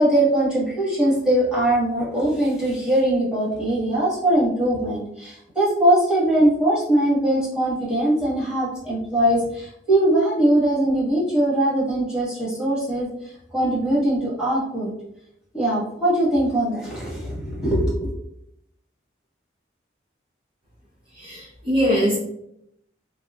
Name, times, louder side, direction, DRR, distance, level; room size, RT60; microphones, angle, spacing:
voice 1, 0.0-13.1 13.5-14.9 15.5-18.1, right 1 dB, 5° right, -9 dB, 1.3 m, -21 dB
voice 2, 21.1-22.2, equal, 30° right, -6 dB, 0.5 m, -22 dB
3.1 x 2.8 x 2.3 m, 0.76 s
head